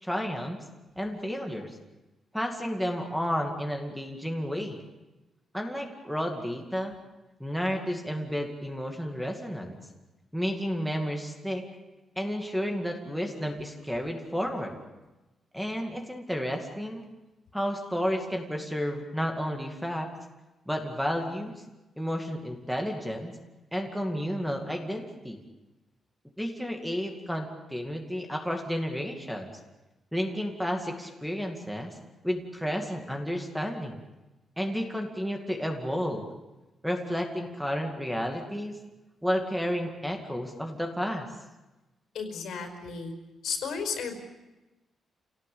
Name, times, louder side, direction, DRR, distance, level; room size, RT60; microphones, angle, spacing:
voice 1, 0.0-0.6 1.0-1.8 2.3-4.8 5.5-6.9 7.4-9.8 10.3-11.6 12.2-14.8 15.5-17.0 17.5-20.1 20.7-21.5 22.0-23.3 23.7-25.4 26.4-29.5 30.1-31.9 32.2-34.0 34.6-36.3 36.8-38.8 39.2-41.3, equal, ahead, 3 dB, 2.3 m, -31 dB
voice 2, 42.1-43.1 43.4-44.2, left 6 dB, 85° left, 5 dB, 5.1 m, -33 dB
28.5 x 17.5 x 8.6 m, 1.1 s
wide cardioid pair, 175°, 0 cm